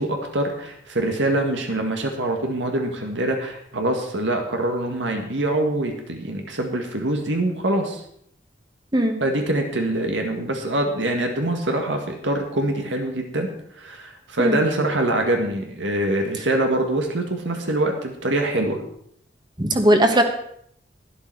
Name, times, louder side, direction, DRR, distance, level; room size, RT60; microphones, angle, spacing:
voice 1, 0.0-8.0 9.2-13.5 13.7-18.8, right 1 dB, 90° right, 3 dB, 1.8 m, -24 dB
voice 2, 19.6-20.2, right 1 dB, 25° right, 5 dB, 1.3 m, -18 dB
12.0 x 11.5 x 4.7 m, 0.68 s
head